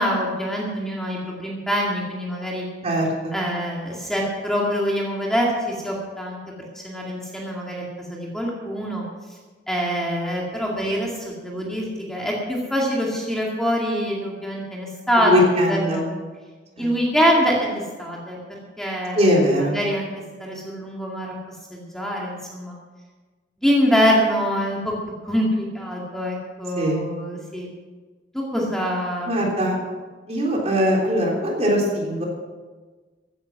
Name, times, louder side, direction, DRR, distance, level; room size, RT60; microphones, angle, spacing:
voice 1, 0.0-2.6 3.3-6.4 6.7-9.0 9.7-16.0 16.8-18.4 18.8-19.3 19.6-20.1 20.4-21.4 21.7-22.7 23.6-24.9 25.2-27.7 28.3-29.7, equal, 5° left, -3 dB, 2.2 m, -24 dB
voice 2, 2.8-3.4 15.2-16.1 16.8-16.9 19.1-19.8 26.8-27.0 29.3-29.8 30.3-32.2, equal, 35° right, -1 dB, 3.4 m, -21 dB
15.0 x 10.0 x 6.0 m, 1.4 s
head